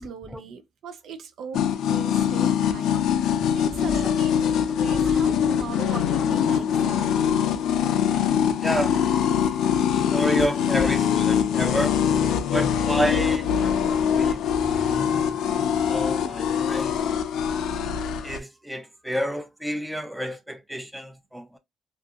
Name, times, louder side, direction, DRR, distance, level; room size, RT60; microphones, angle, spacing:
voice 1, 0.0-4.4 4.7-7.2, right 6 dB, 70° right, 0.5 m, -40 dB
sound 1, 1.5-18.4, left 8 dB, 80° left, 0.4 m, -23 dB
voice 2, 3.7-4.1 4.9-5.2 8.6-9.0 9.9-12.0 12.5-14.4 14.7-15.0 15.9-17.0 18.2-21.6, equal, 5° right, 0.5 m, -30 dB
2.5 x 2.5 x 2.4 m
cardioid pair, 90°, 0 cm